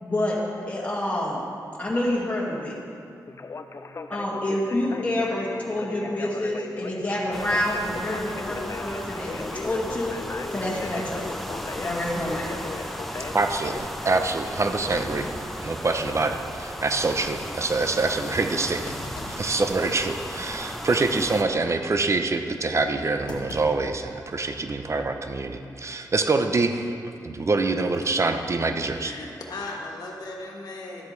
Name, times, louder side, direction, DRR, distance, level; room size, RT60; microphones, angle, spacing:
voice 1, 0.0-1.4 1.8-2.8 4.1-10.2 10.5-11.4 11.8-12.5, left 1 dB, 20° left, -5 dB, 1.9 m, -28 dB
Conversation, 3.3-13.8, left 4 dB, 40° left, 0.5 m, -37 dB
sound 1, 7.3-21.4, equal, ahead, 0.9 m, -36 dB
voice 2, 13.3-15.3 15.6-18.9 19.3-26.9 27.2-29.1, right 3 dB, 40° right, 7 dB, 0.7 m, -25 dB
Thump thud, 14.0-14.1 14.9-16.2 16.6-16.7 17.2-17.4 18.9-19.5 20.0-20.2 21.0-21.3 23.3-24.5 24.8-24.9 26.0-26.4, left 2 dB, 85° left, 1.2 m, -41 dB
voice 3, 29.0-31.1, left 2 dB, 65° left, -1 dB, 1.5 m, -37 dB
12.0 x 8.1 x 3.2 m, 2.5 s
cardioid pair, 60°, 7 cm